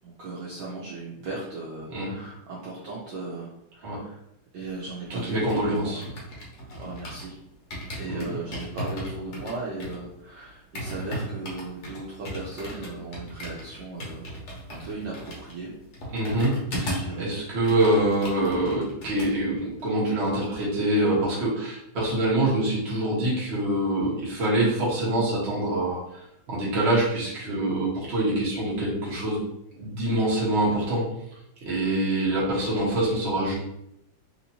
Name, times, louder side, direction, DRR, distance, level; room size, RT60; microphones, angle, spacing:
voice 1, 0.0-4.2 4.5-6.0 6.6-7.4 8.0-14.3 14.7-15.7 17.0-17.3, right 3 dB, 65° right, -6 dB, 1.2 m, -37 dB
sound 1, 5.1-7.3 7.7-17.2 17.5-19.3 19.6-19.9, equal, 55° left, 1.2 m, -37 dB
voice 2, 5.1-6.0 8.1-8.4 16.1-29.4 29.8-31.0 31.6-33.5, right 1 dB, 40° right, -6 dB, 1.1 m, -25 dB
3.5 x 3.0 x 2.7 m, 0.81 s
omnidirectional pair, 2.4 m